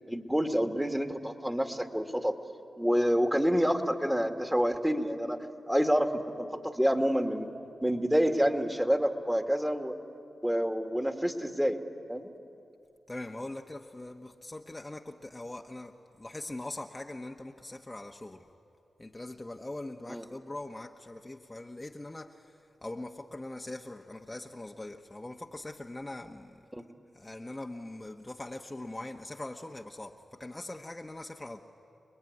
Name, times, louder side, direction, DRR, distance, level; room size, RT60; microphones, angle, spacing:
voice 1, 0.1-2.4 2.8-5.4 5.7-7.5 7.8-10.0 10.4-11.8 12.1-12.3 20.1-20.2 26.7-26.8, equal, 10° right, 5 dB, 2.3 m, -28 dB
voice 2, 13.1-18.5 19.0-26.6 27.1-31.6, left 2 dB, 25° left, 2 dB, 1.2 m, -42 dB
29.5 x 20.5 x 9.8 m, 2.6 s
cardioid pair, 45°, 0 cm